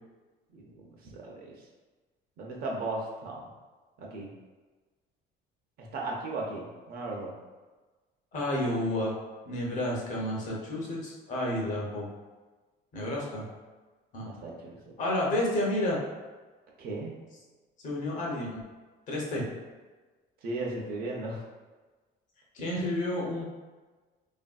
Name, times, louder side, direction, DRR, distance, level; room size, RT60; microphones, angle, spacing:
voice 1, 1.0-1.5 2.4-3.5 4.0-4.3 5.8-7.3 14.2-14.8 16.8-17.1 20.4-21.4, right 2 dB, 55° right, -2 dB, 0.6 m, -36 dB
voice 2, 8.3-9.1 9.5-12.1 12.9-13.5 14.1-14.3 15.0-16.0 17.8-18.6 19.1-19.4 22.5-23.4, left 1 dB, 40° left, -3 dB, 0.7 m, -30 dB
3.2 x 2.6 x 2.3 m, 1.3 s
cardioid pair, 155°, 19 cm